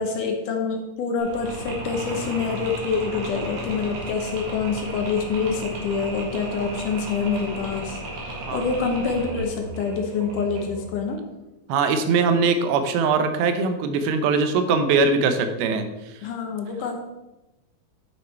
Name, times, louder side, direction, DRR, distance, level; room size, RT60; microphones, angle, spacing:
voice 1, 0.0-11.2 16.2-17.0, left 5 dB, 70° left, 3 dB, 2.2 m, -26 dB
Mechanisms, 1.2-10.9, right 1 dB, 70° right, 3.5 m, -34 dB
voice 2, 11.7-15.8, right 4 dB, 90° right, 8 dB, 2.7 m, -21 dB
9.3 x 6.0 x 4.4 m, 1.0 s
omnidirectional pair, 4.2 m